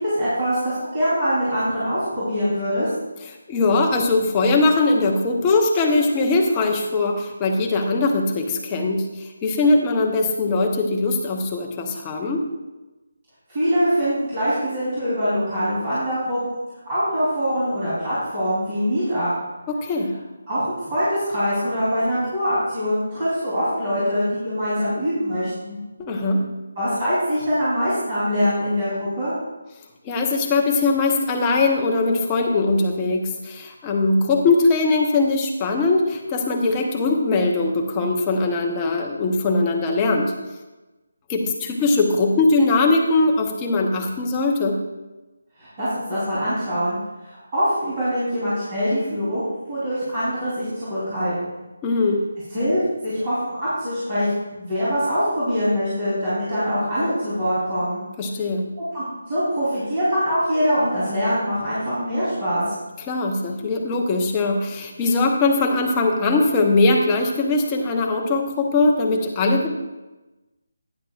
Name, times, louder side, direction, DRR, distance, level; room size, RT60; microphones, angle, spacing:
voice 1, 0.0-2.9 13.5-16.6 16.9-19.3 20.5-25.8 26.8-29.3 45.6-47.0 47.2-51.6 52.5-58.0 58.7-62.6, equal, 25° right, -12 dB, 3.5 m, -23 dB
voice 2, 3.5-12.4 19.7-20.1 26.0-26.5 30.0-40.3 41.3-44.8 51.8-52.2 58.2-58.7 63.1-69.7, left 3 dB, 15° left, 1 dB, 0.9 m, -21 dB
12.0 x 9.8 x 2.5 m, 1.1 s
figure-of-eight pair, 170°, 0 cm